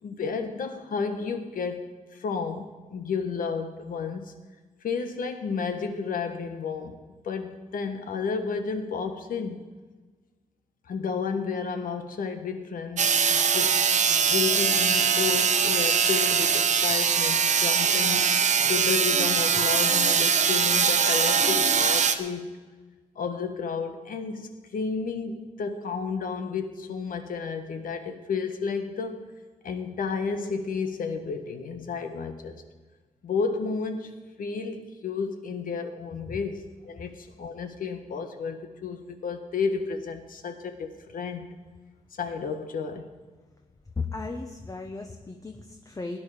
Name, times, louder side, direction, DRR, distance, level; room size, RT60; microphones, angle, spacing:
voice 1, 0.0-1.8 2.1-4.3 4.8-7.0 7.2-9.6 10.9-13.7 14.1-22.6 23.1-29.2 29.6-32.6 33.2-41.5 42.2-43.1, left 5 dB, 75° left, 7 dB, 1.4 m, -32 dB
sound 1, 13.0-22.1, right 6 dB, 60° right, 0.9 m, -22 dB
voice 2, 44.0-46.2, left 4 dB, 25° left, 4 dB, 0.9 m, -35 dB
17.0 x 10.0 x 5.0 m, 1.3 s
wide cardioid pair, 110°, 14 cm